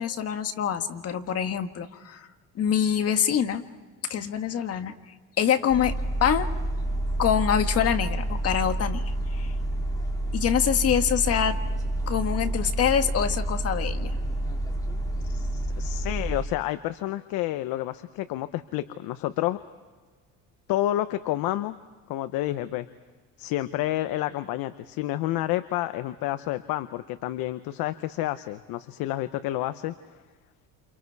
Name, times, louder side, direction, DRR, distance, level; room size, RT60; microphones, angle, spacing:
voice 1, 0.0-2.3 2.6-3.6 4.1-5.0 5.4-5.9 6.2-6.5 7.2-9.0 9.3-9.5 10.3-11.6 12.1-14.1, left 8 dB, 40° left, 8 dB, 1.6 m, -25 dB
sound 1, 5.7-16.4, right 1 dB, 10° left, 2.6 m, -29 dB
voice 2, 15.3-19.6 20.7-21.8 22.1-22.9 23.4-29.9, left 15 dB, 70° left, 11 dB, 0.9 m, -29 dB
29.0 x 28.5 x 4.7 m, 1.3 s
cardioid pair, 140°, 36 cm